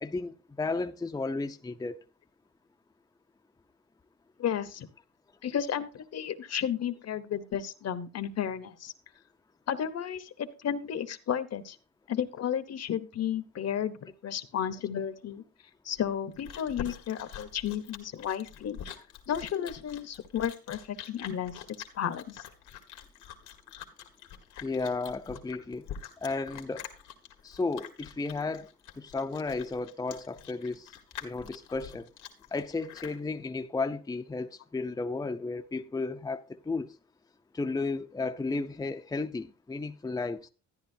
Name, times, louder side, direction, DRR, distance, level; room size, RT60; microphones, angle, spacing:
voice 1, 0.0-2.0 24.6-25.9 26.2-26.9 27.4-28.7 29.0-30.9 31.2-32.1 32.5-37.0 37.5-40.5, left 3 dB, 10° left, 0.6 m, -33 dB
voice 2, 4.4-4.9 5.4-8.9 9.7-11.8 12.1-15.4 15.8-18.8 19.3-22.4, left 9 dB, 55° left, 1.0 m, -33 dB
Chewing mastication, 16.0-33.2, left 9 dB, 90° left, 1.7 m, -45 dB
13.0 x 10.0 x 2.7 m
cardioid pair, 90°, 30 cm